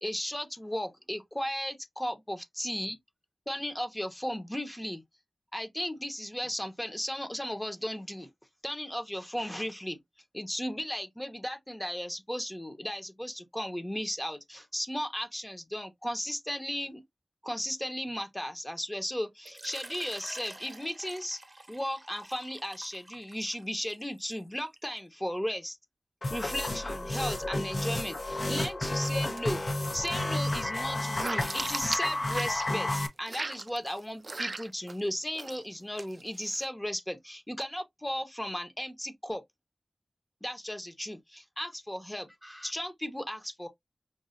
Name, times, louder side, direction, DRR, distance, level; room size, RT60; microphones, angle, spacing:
voice 1, 0.0-3.0 3.5-5.0 5.5-8.3 8.6-10.0 10.3-17.0 17.4-21.4 21.7-25.8 26.3-29.6 29.9-39.4 40.4-43.7, equal, 15° left, 0.9 m, -35 dB
Water / Liquid, 19.5-25.0, right 1 dB, 30° right, 0.9 m, -48 dB
sound 1, 26.2-33.1, left 1 dB, 55° left, 0.7 m, -31 dB
sound 2, 29.1-29.5 29.8-33.0 33.3-35.0 35.3-35.6 36.0-36.7, right 3 dB, 50° right, 0.3 m, -38 dB
5.3 x 2.4 x 2.5 m
wide cardioid pair, 70°, 0 cm